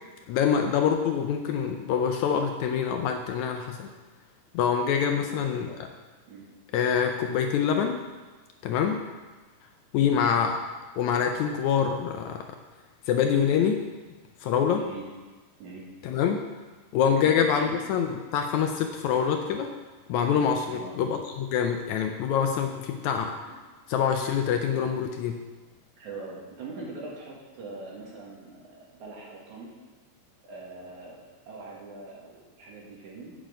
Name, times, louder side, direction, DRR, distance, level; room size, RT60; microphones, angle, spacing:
voice 1, 0.3-3.9 4.5-5.7 6.7-8.0 8.6-9.0 9.9-10.5 11.0-12.4 13.1-13.8 14.4-14.8 16.0-16.4 16.9-19.7 20.1-23.3 23.9-25.4, left 7 dB, 75° left, 4 dB, 1.8 m, -25 dB
voice 2, 5.1-5.8 6.3-6.5 9.9-10.2 14.7-15.1 15.6-15.9 17.2-17.7 20.7-20.9 23.5-23.6 26.0-28.6 28.9-29.7 30.5-33.3, right 3 dB, 70° right, -4 dB, 3.1 m, -42 dB
8.4 x 7.5 x 5.0 m, 1.3 s
omnidirectional pair, 3.7 m